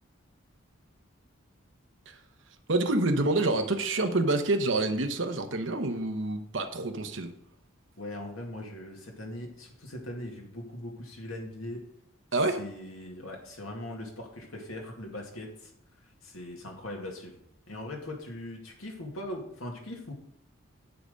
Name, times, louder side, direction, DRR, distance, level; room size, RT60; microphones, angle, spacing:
voice 1, 2.7-7.3 12.3-12.6, right 2 dB, 65° right, 6 dB, 1.0 m, -27 dB
voice 2, 8.0-11.8 12.6-15.7 16.2-17.4 17.7-20.1, left 1 dB, 90° left, 0 dB, 2.2 m, -40 dB
8.4 x 5.9 x 5.2 m, 0.76 s
head